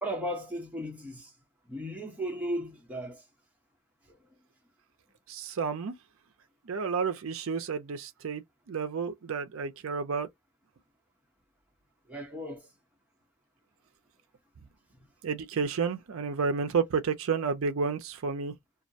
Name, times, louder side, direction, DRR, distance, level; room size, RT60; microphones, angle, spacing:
voice 1, 0.0-1.3 1.7-3.2 12.1-12.7, equal, 5° right, 0.7 m, -35 dB
voice 2, 5.3-6.0 6.7-8.4 8.7-10.3 15.2-18.5, right 5 dB, 65° right, 0.4 m, -31 dB
2.3 x 2.1 x 2.6 m
head